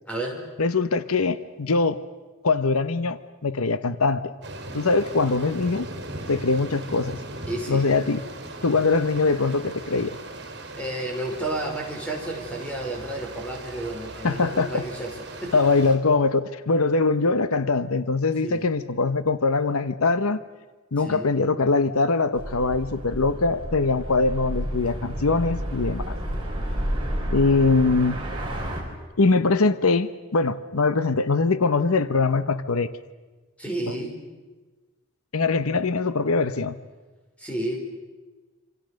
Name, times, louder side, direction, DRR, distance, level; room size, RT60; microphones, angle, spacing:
voice 1, 0.1-0.4 7.5-7.8 10.7-15.6 18.4-18.6 21.0-21.3 33.6-34.1 37.4-37.8, right 1 dB, 5° left, 0 dB, 4.7 m, -31 dB
voice 2, 0.6-2.0 2.4-4.3 4.7-5.9 6.3-7.2 7.7-8.2 8.6-10.2 14.2-14.8 15.5-20.4 20.9-26.2 27.3-28.2 29.2-32.9 35.3-36.8, left 3 dB, 90° left, 13 dB, 0.9 m, -22 dB
sound 1, 4.4-16.0, right 2 dB, 50° right, 4.4 m, -39 dB
sound 2, 22.3-28.8, equal, 25° right, 5.0 m, -30 dB
27.0 x 26.0 x 6.5 m, 1.3 s
head